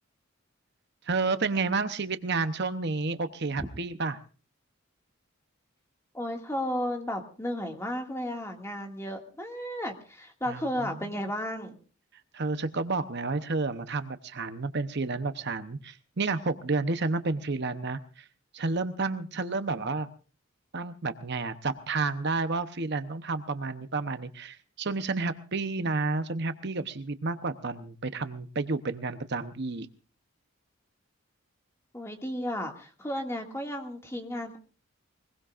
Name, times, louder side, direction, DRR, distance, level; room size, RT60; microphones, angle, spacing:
voice 1, 1.0-4.2 10.5-11.1 12.3-18.3 18.5-20.1 20.7-29.9, right 3 dB, 50° right, 10 dB, 0.8 m, -31 dB
voice 2, 6.1-11.8 31.9-34.6, equal, 15° left, 3 dB, 2.1 m, -33 dB
22.0 x 21.5 x 2.5 m, 0.37 s
head